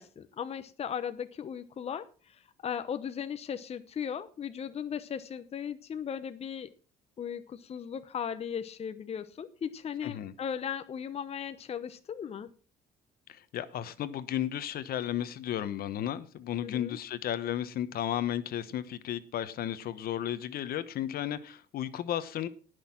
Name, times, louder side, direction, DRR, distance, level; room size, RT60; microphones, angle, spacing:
voice 1, 0.0-6.7 7.2-12.5 16.6-17.0, left 8 dB, 35° left, 0.9 m, -37 dB
voice 2, 10.0-10.3 13.3-22.5, left 11 dB, 60° left, 1.1 m, -34 dB
18.5 x 6.6 x 5.8 m
cardioid pair, 110°, 17 cm